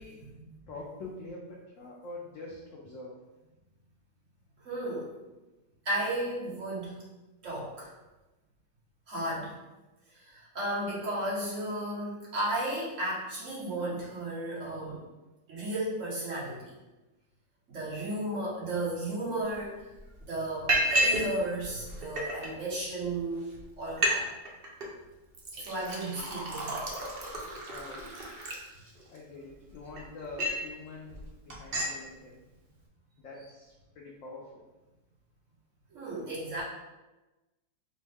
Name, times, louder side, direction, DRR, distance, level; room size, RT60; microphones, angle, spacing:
voice 1, 0.7-3.1 25.5-25.7 26.0-26.4 27.6-28.1 29.1-32.4 33.2-34.6, left 2 dB, 70° left, -2 dB, 0.7 m, -45 dB
voice 2, 4.6-5.1 5.8-7.0 7.4-7.9 9.1-9.5 10.1-15.0 15.5-16.7 17.7-19.8 20.3-23.5 23.8-24.3 25.6-26.9 35.9-36.6, right 1 dB, 45° right, -7 dB, 1.5 m, -34 dB
Liquid, 19.5-19.6 19.9-20.2 20.7-21.3 21.6-22.5 23.1-23.2 23.5-23.6 23.9-24.2 24.4-24.9 25.3-29.2 29.7-30.7 31.1-31.2 31.5-32.0, right 1 dB, 65° right, 0.5 m, -31 dB
5.4 x 2.1 x 3.4 m, 1.1 s
omnidirectional pair, 1.9 m